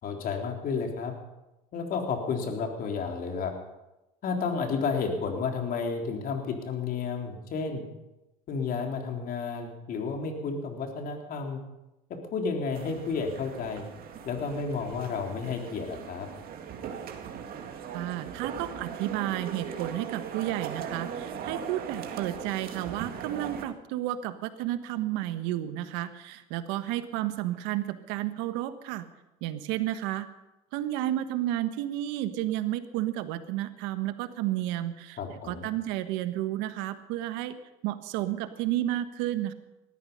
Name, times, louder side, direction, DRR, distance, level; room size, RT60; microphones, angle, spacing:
voice 1, 0.0-1.1 1.7-3.5 4.2-7.8 8.5-11.6 12.3-13.9 14.3-16.3 35.2-35.7, left 5 dB, 50° left, 3 dB, 3.7 m, -31 dB
sound 1, 12.7-23.6, right 7 dB, 55° right, 2.1 m, -39 dB
voice 2, 17.9-29.1 29.4-30.3 30.7-37.6 37.8-39.5, right 13 dB, 75° right, 11 dB, 1.3 m, -32 dB
19.5 x 13.5 x 5.5 m, 0.96 s
supercardioid pair, 90°, 19 cm